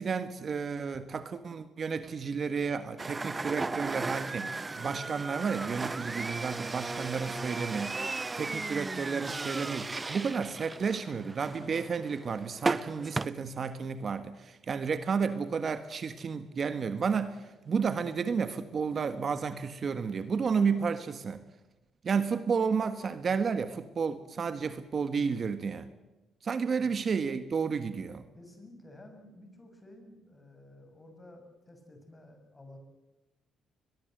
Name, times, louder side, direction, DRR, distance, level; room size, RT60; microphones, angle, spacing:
voice 1, 0.0-8.0 8.3-21.4 22.0-25.9 26.4-28.2, right 5 dB, 45° right, 11 dB, 1.5 m, -32 dB
sound 1, 3.0-13.3, right 3 dB, 25° right, 0.7 m, -36 dB
voice 2, 28.3-32.8, left 1 dB, 20° left, 5 dB, 6.9 m, -53 dB
22.0 x 21.5 x 7.9 m, 1.1 s
cardioid pair, 90°, 0 cm